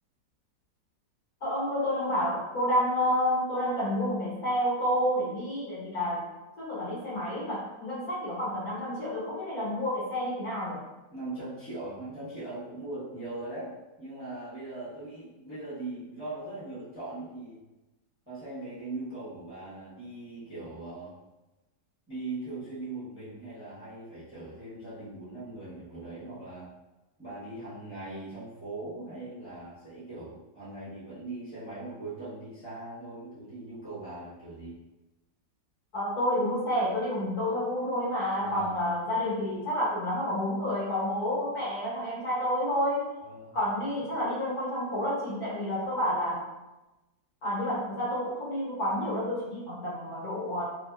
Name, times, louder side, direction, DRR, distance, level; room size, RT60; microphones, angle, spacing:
voice 1, 1.4-6.3 6.6-10.8 35.9-43.1 43.5-46.4 47.4-50.6, equal, 60° left, -8 dB, 1.5 m, -29 dB
voice 2, 11.1-17.6 18.3-21.2 22.1-26.7 27.2-34.8 38.4-38.8 43.2-43.6 43.8-44.0, right 2 dB, 10° right, -12 dB, 0.9 m, -40 dB
3.0 x 2.6 x 2.3 m, 1.0 s
omnidirectional pair, 1.9 m